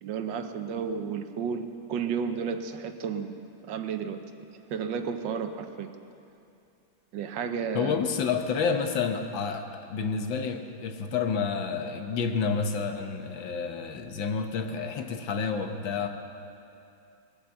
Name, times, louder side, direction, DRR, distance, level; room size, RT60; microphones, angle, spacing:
voice 1, 0.0-3.3 3.7-4.2 4.7-5.9 7.1-8.0, right 6 dB, 75° right, 8 dB, 1.5 m, -32 dB
voice 2, 7.7-16.1, left 5 dB, 75° left, 6 dB, 1.8 m, -29 dB
20.5 x 9.1 x 7.7 m, 2.6 s
omnidirectional pair, 2.1 m